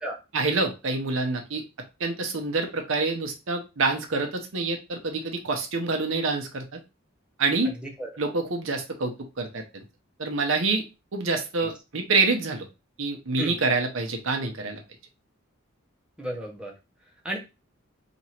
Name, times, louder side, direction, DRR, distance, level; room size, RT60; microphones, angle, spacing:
voice 1, 0.3-1.6 2.0-6.8 7.4-7.8 8.2-9.6 10.2-10.8 11.1-12.7 13.0-14.8, right 3 dB, 80° right, 4 dB, 0.8 m, -26 dB
voice 2, 7.6-8.1 11.3-11.7 13.4-13.6 16.2-16.7 17.2-17.4, right 1 dB, 5° right, -1 dB, 0.8 m, -34 dB
3.0 x 2.6 x 4.3 m, 0.27 s
head